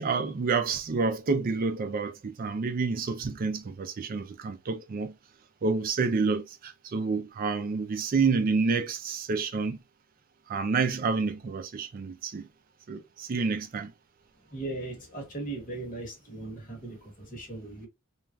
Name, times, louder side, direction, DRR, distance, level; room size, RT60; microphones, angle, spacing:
voice 1, 0.0-5.1 5.6-9.8 10.5-12.5 12.9-13.9, right 4 dB, 40° right, 0.4 m, -29 dB
voice 2, 14.5-17.9, right 2 dB, 40° left, 1.1 m, -38 dB
3.2 x 2.3 x 2.3 m
head